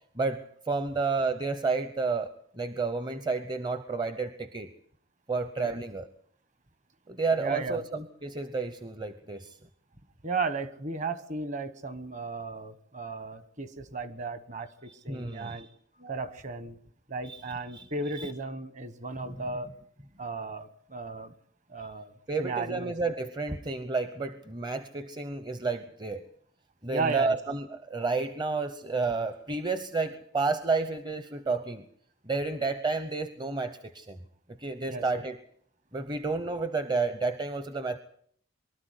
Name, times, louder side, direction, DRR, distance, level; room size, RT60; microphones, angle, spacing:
voice 1, 0.2-4.7 5.3-6.1 7.1-9.6 15.1-15.7 17.2-17.4 17.7-17.9 18.2-18.3 22.3-26.2 26.8-31.8 32.3-34.2 34.6-35.4 35.9-38.0, right 3 dB, 20° right, 11 dB, 0.8 m, -31 dB
voice 2, 7.4-7.8 10.2-15.7 16.0-16.8 17.1-19.7 20.2-21.3 21.7-22.1 22.4-22.9 26.9-27.3 34.8-35.2, right 3 dB, 35° right, 13 dB, 1.3 m, -35 dB
23.5 x 13.0 x 9.7 m, 0.64 s
head